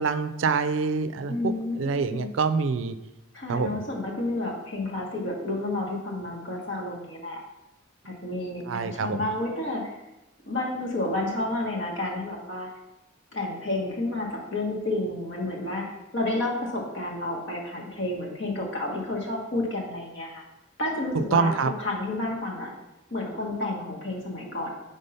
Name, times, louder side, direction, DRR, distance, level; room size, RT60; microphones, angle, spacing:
voice 1, 0.0-3.0 3.5-3.8 8.7-9.3 21.3-21.7, right 5 dB, 75° right, 11 dB, 0.4 m, -26 dB
voice 2, 1.3-2.3 3.3-7.4 8.0-9.9 10.5-12.7 13.3-15.8 16.1-20.4 20.8-21.5 21.8-22.7 23.1-24.7, left 2 dB, 65° left, -2 dB, 1.4 m, -30 dB
5.4 x 3.6 x 5.5 m, 0.94 s
head